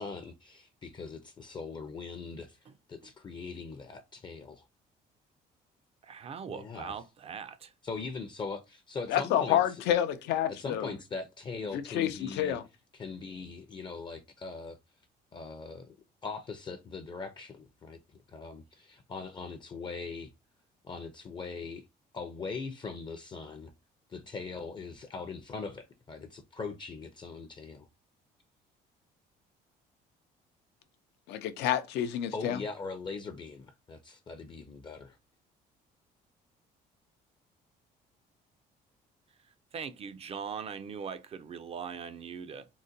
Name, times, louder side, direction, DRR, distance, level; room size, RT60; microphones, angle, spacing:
voice 1, 0.0-4.6 6.5-7.0 7.8-9.8 10.5-12.6 12.9-14.8 15.3-16.0 16.2-20.3 20.8-21.9 22.1-23.7 24.1-27.9 32.3-35.2, left 4 dB, 30° left, 0.4 m, -41 dB
voice 2, 6.0-7.7 39.7-42.7, right 6 dB, 35° right, 0.3 m, -40 dB
voice 3, 9.1-10.9 11.7-12.6 31.3-32.6, left 10 dB, 85° left, 0.5 m, -29 dB
3.8 x 2.1 x 2.6 m
cardioid pair, 110°, 17 cm